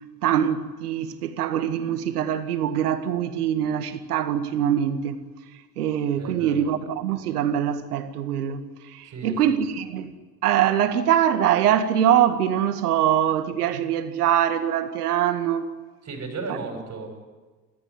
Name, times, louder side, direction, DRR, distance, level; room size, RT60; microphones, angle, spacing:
voice 1, 0.2-5.2 5.8-10.1 10.4-15.7, right 10 dB, 70° right, 2.0 m, -23 dB
voice 2, 6.2-6.7 9.0-9.6 16.0-17.2, right 3 dB, 35° right, 7.0 m, -35 dB
28.5 x 13.0 x 9.6 m
figure-of-eight pair, 75°, 47 cm